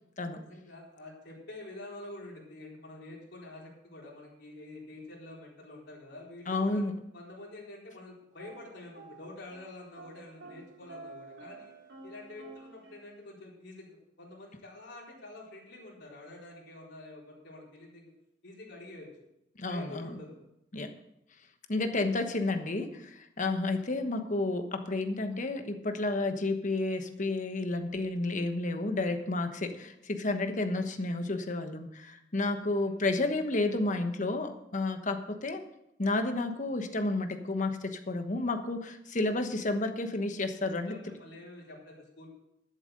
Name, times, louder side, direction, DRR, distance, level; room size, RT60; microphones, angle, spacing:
voice 1, 0.4-6.8 7.1-11.7 12.0-18.1 18.4-19.1 19.7-20.4 30.5-30.8 32.6-32.9 40.5-42.3, left 2 dB, 60° left, -4 dB, 4.2 m, -47 dB
voice 2, 6.5-6.9 19.6-20.2 20.7-20.9 21.7-35.7 36.0-41.0, left 2 dB, 40° left, 7 dB, 1.1 m, -31 dB
sound 1, 8.3-9.7 10.0-13.0, right 3 dB, 80° right, 2.8 m, -50 dB
12.0 x 7.7 x 6.6 m, 0.82 s
head